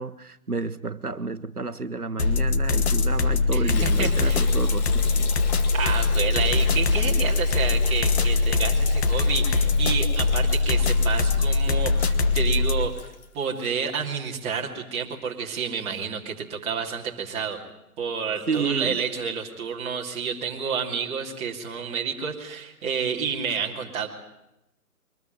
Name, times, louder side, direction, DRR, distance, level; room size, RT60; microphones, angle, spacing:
voice 1, 0.0-5.3 18.5-19.0, right 4 dB, 90° right, 1.2 m, -31 dB
sound 1, 2.2-12.9, left 3 dB, 45° left, 2.0 m, -22 dB
voice 2, 3.5-4.5 5.7-13.1 13.3-17.6 18.0-24.1, right 6 dB, 15° right, 2.8 m, -30 dB
Liquid, 3.7-13.8, left 5 dB, 30° left, 2.2 m, -40 dB
23.5 x 20.5 x 9.1 m
figure-of-eight pair, 140°, 44 cm